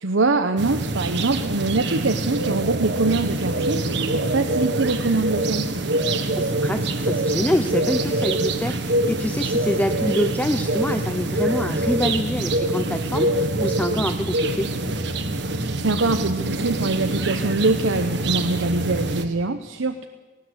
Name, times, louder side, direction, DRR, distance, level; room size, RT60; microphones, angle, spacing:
voice 1, 0.0-3.8 4.1-5.7 15.8-20.1, right 3 dB, 85° right, 8 dB, 0.9 m, -23 dB
sound 1, 0.6-19.3, right 2 dB, 65° right, 1.6 m, -25 dB
voice 2, 6.4-14.7, left 1 dB, 10° left, 7 dB, 0.7 m, -26 dB
19.0 x 18.0 x 8.1 m, 1.3 s
head